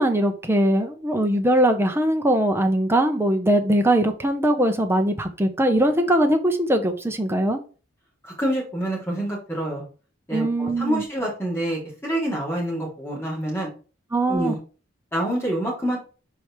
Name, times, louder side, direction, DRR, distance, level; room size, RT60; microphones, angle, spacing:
voice 1, 0.0-7.6 10.3-11.0 14.1-14.6, right 1 dB, 10° right, 5 dB, 0.9 m, -21 dB
voice 2, 8.2-9.8 10.3-13.7 14.3-14.6 15.1-16.0, right 1 dB, 15° left, -4 dB, 3.4 m, -27 dB
5.0 x 4.5 x 4.9 m, 0.35 s
head